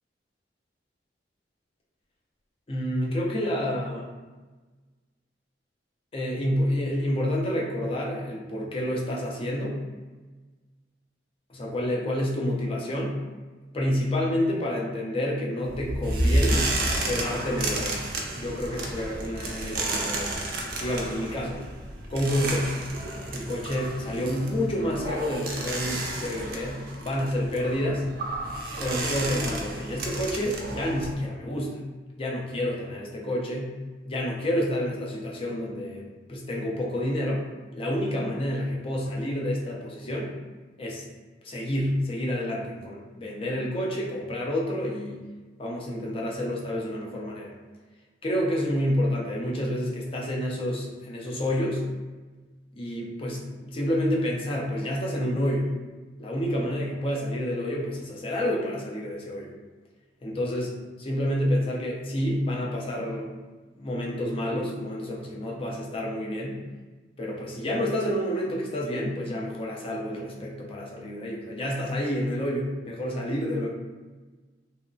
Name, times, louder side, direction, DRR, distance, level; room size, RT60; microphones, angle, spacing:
voice 1, 2.7-4.1 6.1-9.8 11.5-13.2 13.7-16.7 17.0-18.1 18.4-20.4 20.8-21.6 22.1-22.7 23.3-28.0 28.8-31.8 32.2-33.7 34.1-37.5 37.7-40.3 40.8-41.0 41.4-45.2 45.6-47.5 48.2-51.8 52.7-55.7 56.2-59.5 60.2-60.7 61.0-63.3 63.7-66.6 67.2-73.7, equal, 30° left, -2 dB, 0.4 m, -29 dB
sound 1, 15.6-31.1, right 2 dB, 55° right, 0.4 m, -31 dB
2.9 x 2.1 x 2.5 m, 1.3 s
head